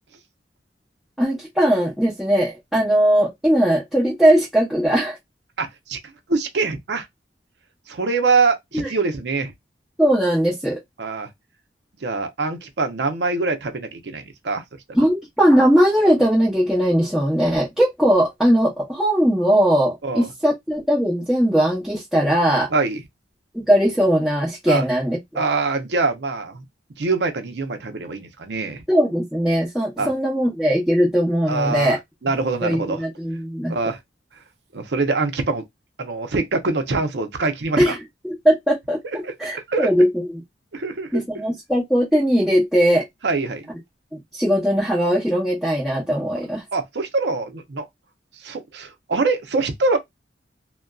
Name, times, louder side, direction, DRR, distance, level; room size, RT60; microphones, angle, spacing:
voice 1, 1.2-5.2 8.7-8.9 10.0-10.8 14.9-22.7 23.5-25.2 28.9-32.0 32.6-33.7 37.8-38.0 38.2-39.0 39.4-40.1 41.1-43.0 44.1-46.6, equal, ahead, 0.7 m, -19 dB
voice 2, 5.6-6.0 6.3-7.1 7.9-9.5 11.0-11.3 12.0-14.6 20.0-20.3 22.7-23.0 24.7-24.9 25.3-26.6 27.0-28.8 30.0-30.1 31.5-33.0 33.7-34.0 34.7-35.6 36.0-38.0 39.2-39.9 40.7-41.2 43.2-43.7 46.7-47.8 48.4-50.0, right 3 dB, 75° right, 0.6 m, -24 dB
2.5 x 2.2 x 2.2 m
head